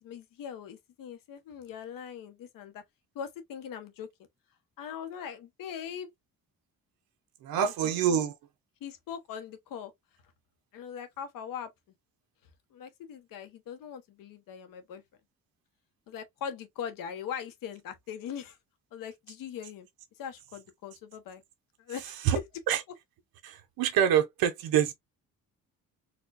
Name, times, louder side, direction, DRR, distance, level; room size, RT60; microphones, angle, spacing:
voice 1, 0.0-2.8 3.1-4.1 4.8-6.1 7.6-7.7 8.1-8.2 8.8-9.9 10.7-11.7 12.7-15.0 16.1-18.6 18.9-19.9 20.2-21.4 21.8-22.4, left 8 dB, 70° left, 1.0 m, -40 dB
voice 2, 7.4-8.3 22.2-22.4 22.7-22.8 23.4-24.9, right 9 dB, 90° right, 0.8 m, -26 dB
4.3 x 2.3 x 2.4 m
cardioid pair, 175°, 35 cm